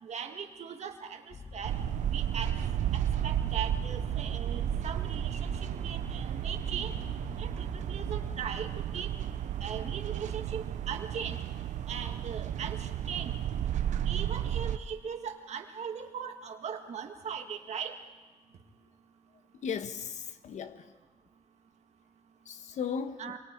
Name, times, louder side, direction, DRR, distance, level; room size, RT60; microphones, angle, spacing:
voice 1, 0.0-1.8 2.1-2.6 2.9-7.0 7.4-9.1 9.6-11.4 11.9-13.3 14.1-18.0 23.2-23.4, right 7 dB, 70° right, 1.9 m, -39 dB
Vehicle, 1.3-8.6, left 3 dB, 45° left, 2.0 m, -45 dB
sound 1, 1.6-14.8, right 10 dB, 85° right, 0.7 m, -33 dB
voice 2, 19.5-20.9 22.4-23.3, left 6 dB, 80° left, 1.3 m, -36 dB
27.5 x 23.5 x 4.6 m
cardioid pair, 95°, 12 cm